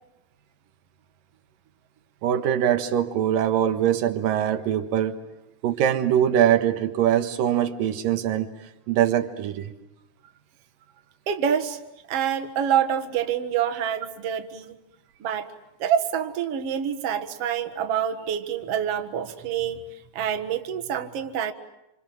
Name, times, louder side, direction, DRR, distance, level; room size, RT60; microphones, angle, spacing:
voice 1, 2.2-5.2 5.6-8.5 8.9-9.7, right 10 dB, 80° right, 9 dB, 3.2 m, -22 dB
voice 2, 11.3-11.8 12.1-14.8 15.2-15.5 15.8-19.8 20.1-21.5, right 8 dB, 50° right, 6 dB, 2.4 m, -26 dB
28.0 x 27.5 x 7.6 m, 0.91 s
omnidirectional pair, 3.9 m